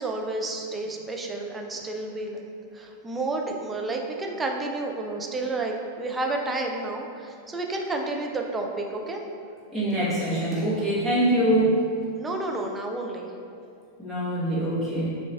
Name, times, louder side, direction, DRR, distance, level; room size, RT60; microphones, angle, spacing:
voice 1, 0.0-2.4 2.7-9.2 12.1-13.3, right 2 dB, 15° right, 1 dB, 0.4 m, -30 dB
voice 2, 9.7-11.7 14.0-15.1, right 1 dB, 5° left, -11 dB, 1.3 m, -24 dB
5.8 x 2.5 x 2.3 m, 2.4 s
figure-of-eight pair, 90°, 0 cm